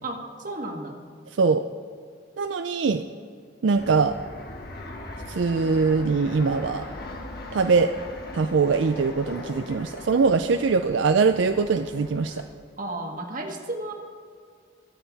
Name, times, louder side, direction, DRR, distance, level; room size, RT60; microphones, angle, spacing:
voice 1, 0.0-1.0 12.8-13.9, right 2 dB, 45° right, 2 dB, 1.6 m, -33 dB
voice 2, 2.4-3.0 3.6-4.2 5.3-6.9 7.5-7.9 8.3-12.4, right 4 dB, 70° right, 8 dB, 0.4 m, -22 dB
Fixed-wing aircraft airplane, 3.7-12.4, left 1 dB, 50° left, 1.5 m, -40 dB
23.5 x 7.9 x 4.1 m, 2.1 s
head